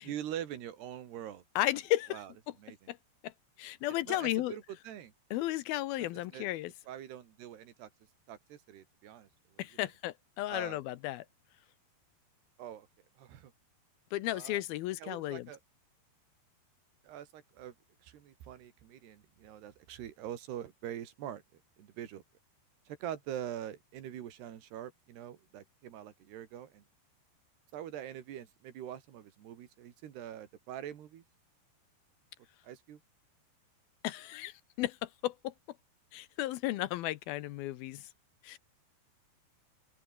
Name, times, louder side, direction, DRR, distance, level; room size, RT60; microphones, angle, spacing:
voice 1, 0.0-1.4 2.1-2.3 2.6-2.9 4.1-5.1 6.0-6.1 6.3-6.5 6.9-7.9 8.3-9.3 9.5-9.7 10.5-10.8 12.6-12.9 13.2-13.5 14.3-14.6 15.0-15.6 17.0-17.7 18.0-21.4 21.8-22.2 22.9-26.8 27.7-31.2 32.6-33.0, right 10 dB, 75° right, 4.2 m, -44 dB
voice 2, 1.6-2.2 2.9-3.0 3.2-3.3 3.6-4.5 5.3-6.7 9.6-11.3 14.1-15.5 34.0-35.5 36.1-38.1 38.4-38.6, left 15 dB, 80° left, 2.4 m, -34 dB
open air
omnidirectional pair, 4.9 m